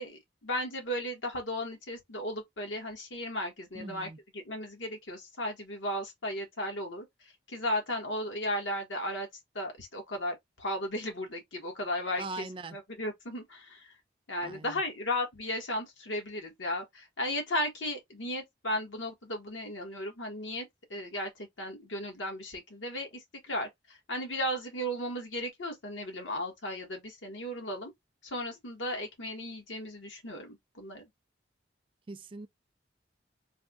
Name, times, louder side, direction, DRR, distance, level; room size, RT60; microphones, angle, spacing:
voice 1, 0.0-9.3 9.5-12.4 12.7-13.9 14.3-27.9 28.2-31.0, left 1 dB, 90° left, 1.3 m, -35 dB
voice 2, 3.7-4.2 12.2-12.8 14.4-14.8 32.1-32.5, right 3 dB, 30° right, 0.3 m, -41 dB
3.5 x 2.3 x 3.5 m
head